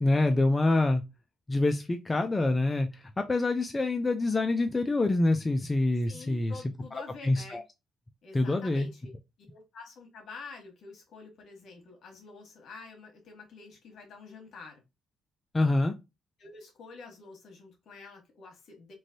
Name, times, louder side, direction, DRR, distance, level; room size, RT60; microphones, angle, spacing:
voice 1, 0.0-1.0 1.5-6.6 7.2-7.6 8.3-8.9 15.5-15.9, left 2 dB, 20° left, 0.4 m, -26 dB
voice 2, 6.0-7.6 8.2-9.1 9.4-14.8 16.4-18.9, left 4 dB, 65° left, 1.4 m, -48 dB
3.1 x 2.6 x 2.6 m
cardioid pair, 90°, 0 cm